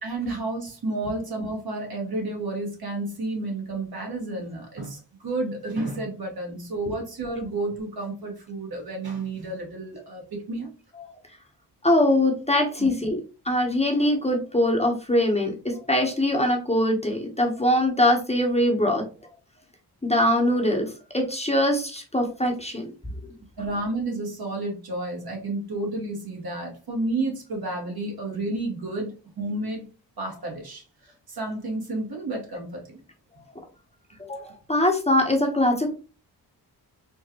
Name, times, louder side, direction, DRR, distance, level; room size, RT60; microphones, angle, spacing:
voice 1, 0.0-10.7 12.8-12.9 23.6-29.9 30.2-33.0, right 2 dB, 60° right, 0 dB, 1.8 m, -31 dB
voice 2, 11.8-19.0 20.0-22.9 33.5-33.6 34.2-35.9, left 1 dB, 15° left, 1 dB, 1.1 m, -23 dB
4.3 x 2.5 x 3.0 m, 0.33 s
cardioid pair, 60°, 42 cm